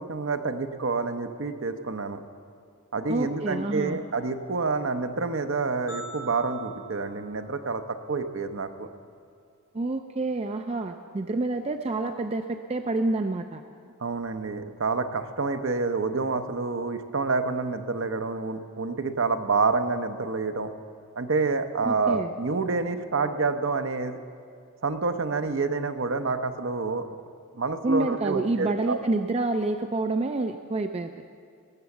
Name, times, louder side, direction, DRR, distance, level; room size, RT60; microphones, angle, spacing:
voice 1, 0.0-2.2 2.9-7.8 8.1-8.9 14.0-20.7 21.2-24.2 24.8-27.1 27.5-29.0, right 4 dB, 60° right, 8 dB, 0.7 m, -28 dB
voice 2, 3.1-4.0 9.7-13.6 21.8-22.3 27.8-31.1, right 2 dB, 30° right, 6 dB, 0.3 m, -28 dB
sound 1, 5.9-8.2, right 5 dB, 85° left, 2.2 m, -43 dB
19.0 x 6.9 x 7.2 m, 2.2 s
head